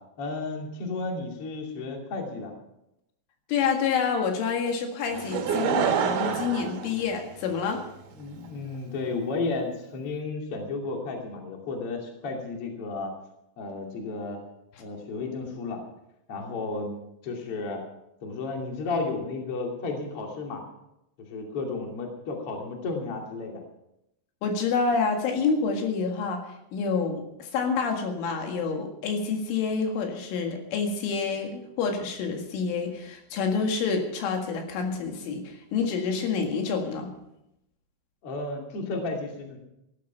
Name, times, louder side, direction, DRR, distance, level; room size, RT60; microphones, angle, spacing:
voice 1, 0.2-2.5 8.1-13.1 13.6-14.4 14.8-15.8 16.3-17.8 18.2-20.6 21.3-23.6 38.2-39.6, left 3 dB, 35° left, 1 dB, 2.7 m, -33 dB
voice 2, 3.5-7.8 24.4-26.5 26.7-37.1, left 5 dB, 80° left, 3 dB, 4.3 m, -28 dB
Laughter / Crowd, 5.1-7.8 8.5-8.6, right 7 dB, 65° right, 3.0 m, -27 dB
15.5 x 12.5 x 5.7 m, 0.84 s
omnidirectional pair, 5.6 m